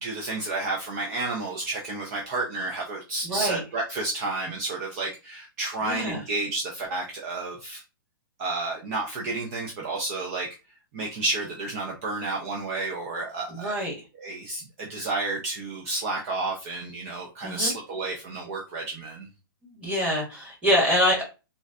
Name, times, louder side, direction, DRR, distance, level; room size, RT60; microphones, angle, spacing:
voice 1, 0.0-7.8 8.4-10.5 10.9-13.8 14.2-19.3, right 2 dB, 35° right, -1 dB, 0.6 m, -31 dB
voice 2, 3.2-3.6 5.8-6.2 13.5-14.0 17.4-17.7 19.7-21.2, equal, 10° right, -4 dB, 1.3 m, -25 dB
3.8 x 2.2 x 2.4 m, 0.30 s
hypercardioid pair, 150°, 12 cm